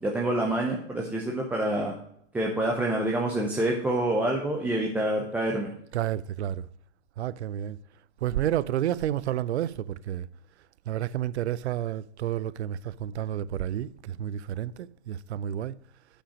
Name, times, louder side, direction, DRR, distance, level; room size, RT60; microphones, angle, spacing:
voice 1, 0.0-1.9 2.3-5.7, right 1 dB, 5° right, 0.6 m, -27 dB
voice 2, 5.9-6.7 7.2-7.8 8.2-10.3 10.9-15.7, right 11 dB, 65° right, 0.5 m, -30 dB
8.9 x 5.1 x 5.0 m
hypercardioid pair, 130°, 35 cm